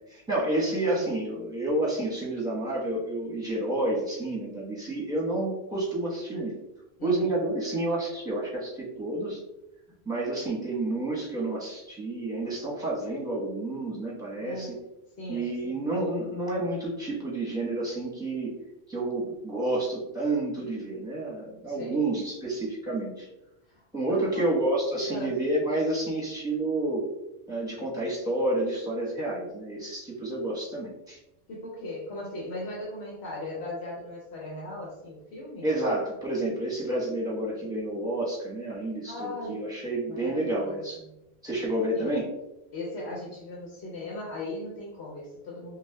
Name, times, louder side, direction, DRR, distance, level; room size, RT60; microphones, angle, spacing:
voice 1, 0.1-6.6 7.0-9.4 10.0-14.8 15.3-18.6 18.9-23.3 23.9-27.1 27.5-31.2 35.6-41.0 41.4-42.3, right 2 dB, 5° right, -5 dB, 1.0 m, -29 dB
voice 2, 0.7-1.0 7.0-7.3 14.4-14.7 15.2-15.5 15.7-15.8 21.7-22.0 23.7-23.8 24.1-24.5 25.1-25.4 31.5-35.7 39.0-39.6 40.1-41.1 41.9-42.1 42.7-45.8, left 2 dB, 80° left, -4 dB, 1.0 m, -38 dB
5.7 x 2.1 x 2.2 m, 0.93 s
omnidirectional pair, 1.1 m